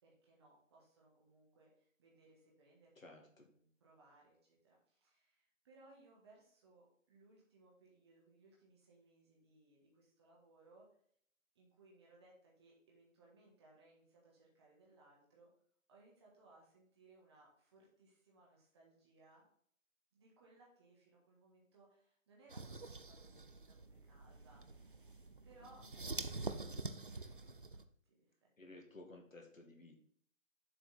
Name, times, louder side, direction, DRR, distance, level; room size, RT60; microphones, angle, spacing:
voice 1, 0.0-10.9 11.5-15.5 15.9-19.4 20.1-24.6 25.4-25.8 26.2-27.2 27.7-27.8 28.1-28.5, right 2 dB, 20° right, -3 dB, 1.5 m, -66 dB
voice 2, 3.0-3.5 28.6-30.0, left 2 dB, 75° left, 2 dB, 2.2 m, -56 dB
sound 1, 22.5-27.8, right 3 dB, 40° right, 0.4 m, -46 dB
7.2 x 6.0 x 4.2 m, 0.63 s
figure-of-eight pair, 150°, 40 cm